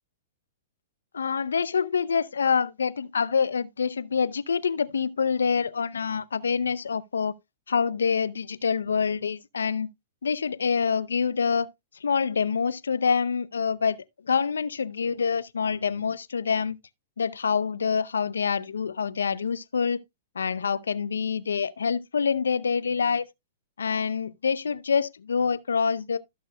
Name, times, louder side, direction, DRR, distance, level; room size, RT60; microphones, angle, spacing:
voice 1, 1.1-7.3 7.7-9.9 10.2-11.7 12.0-14.0 14.3-16.8 17.2-20.0 20.4-23.2 23.8-26.2, left 6 dB, 85° left, 0.6 m, -26 dB
15.5 x 6.4 x 2.2 m
hypercardioid pair, 115°, 0 cm